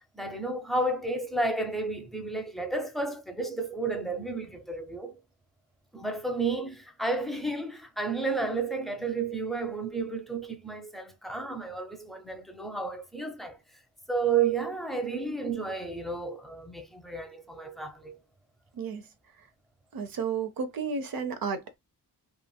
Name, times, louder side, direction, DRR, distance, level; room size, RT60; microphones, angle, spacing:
voice 1, 0.1-5.2 5.9-13.6 14.1-18.2, right 3 dB, ahead, 0.6 m, -32 dB
voice 2, 19.9-21.8, right 5 dB, 60° right, 0.8 m, -32 dB
3.2 x 2.4 x 2.2 m
cardioid pair, 90°, 40 cm